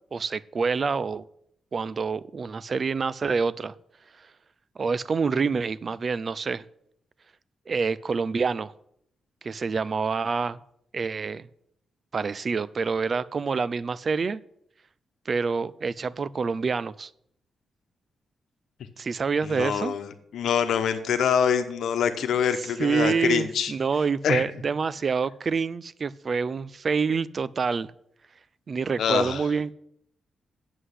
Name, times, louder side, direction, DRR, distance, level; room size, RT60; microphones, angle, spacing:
voice 1, 0.1-1.2 1.7-3.7 4.2-4.3 4.8-6.6 7.7-8.7 9.4-10.6 10.9-11.5 12.1-14.4 15.3-17.1 19.0-19.9 22.8-27.9 28.7-29.7, right 5 dB, 35° right, 19 dB, 0.3 m, -27 dB
voice 2, 19.4-23.7 24.2-24.4 29.0-29.5, left 8 dB, 80° left, 9 dB, 1.1 m, -25 dB
7.9 x 7.9 x 8.1 m, 0.72 s
wide cardioid pair, 165°, 0 cm